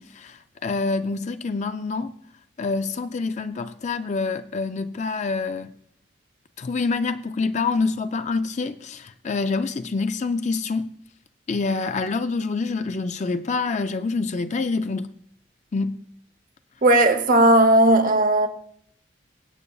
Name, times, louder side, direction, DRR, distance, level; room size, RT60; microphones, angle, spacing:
voice 1, 0.0-2.1 2.6-5.7 6.6-10.9 11.5-15.1 15.7-16.0, left 4 dB, 35° left, 0.4 m, -26 dB
voice 2, 16.8-18.5, right 1 dB, 45° right, 0.9 m, -16 dB
23.0 x 8.3 x 2.3 m
head